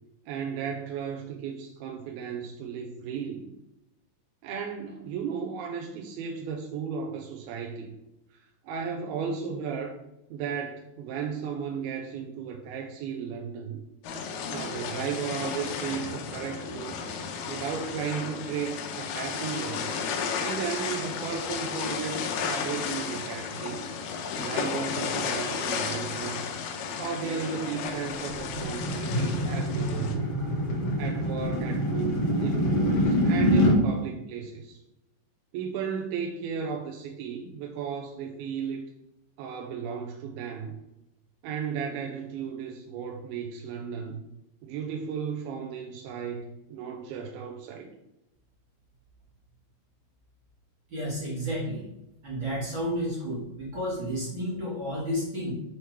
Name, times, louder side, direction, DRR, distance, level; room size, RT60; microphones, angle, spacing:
voice 1, 0.3-3.5 4.4-7.9 8.3-10.0 10.3-13.8 14.5-17.0 17.5-19.9 20.4-23.8 24.4-26.5 27.0-30.2 31.0-34.8 35.5-38.9 39.4-40.7 41.4-44.2 44.6-47.9, right 6 dB, 85° right, 1 dB, 2.5 m, -35 dB
sound 1, 14.0-30.2, left 6 dB, 85° left, 2.7 m, -33 dB
sound 2, 27.8-33.8, equal, 70° left, 1.5 m, -25 dB
voice 2, 50.9-51.8 52.2-55.5, equal, 45° right, -6 dB, 1.7 m, -31 dB
7.1 x 3.3 x 4.5 m, 0.90 s
omnidirectional pair, 4.5 m